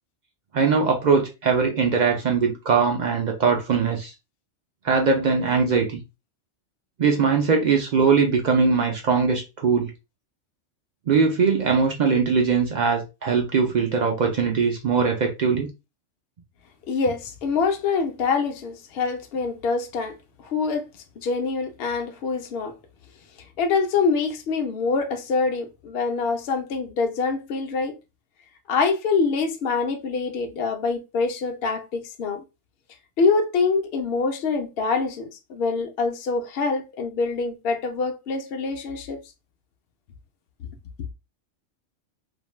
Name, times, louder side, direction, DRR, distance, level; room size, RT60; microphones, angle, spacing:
voice 1, 0.5-4.1 4.8-6.0 7.0-9.9 11.1-15.7, right 5 dB, 65° right, 0.4 m, -21 dB
voice 2, 16.9-20.9 21.2-22.7 23.6-27.9 28.7-32.4 33.2-39.2, left 4 dB, 60° left, 0.7 m, -25 dB
2.5 x 2.1 x 3.1 m
omnidirectional pair, 1.3 m